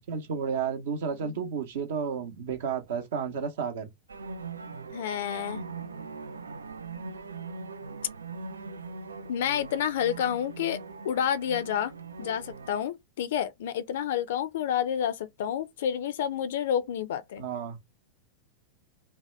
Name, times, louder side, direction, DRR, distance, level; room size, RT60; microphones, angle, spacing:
voice 1, 0.1-3.9 17.4-17.8, right 6 dB, 55° right, 0.8 m, -32 dB
sound 1, 4.1-12.8, right 4 dB, 75° right, 0.3 m, -41 dB
voice 2, 4.9-5.6 9.3-10.8 11.0-11.9 12.2-17.4, left 9 dB, 55° left, 0.4 m, -29 dB
2.8 x 2.1 x 3.1 m
figure-of-eight pair, 90°, 0 cm